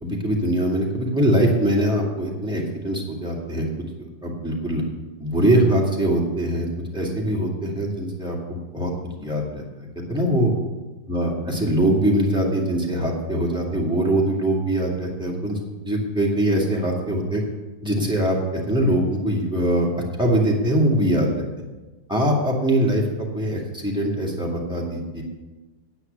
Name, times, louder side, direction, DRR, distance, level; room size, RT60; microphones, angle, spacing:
voice 1, 0.0-3.7 4.2-4.8 5.2-8.9 9.2-9.6 10.1-10.5 11.1-15.6 15.8-17.4 17.8-19.9 20.2-21.4 22.1-25.2, right 1 dB, ahead, -3 dB, 2.0 m, -22 dB
9.4 x 9.0 x 6.7 m, 1.2 s
omnidirectional pair, 2.2 m